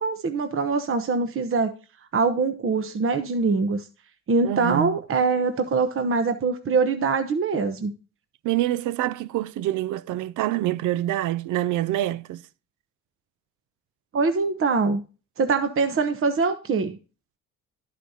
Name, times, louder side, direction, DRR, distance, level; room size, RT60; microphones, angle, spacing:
voice 1, 0.0-1.7 2.1-3.8 4.3-7.9 14.1-15.0 15.4-17.0, right 4 dB, 45° right, 1.0 m, -23 dB
voice 2, 4.4-5.0 8.4-12.4, right 14 dB, 85° right, 0.5 m, -26 dB
11.5 x 8.3 x 2.8 m
cardioid pair, 90°, 30 cm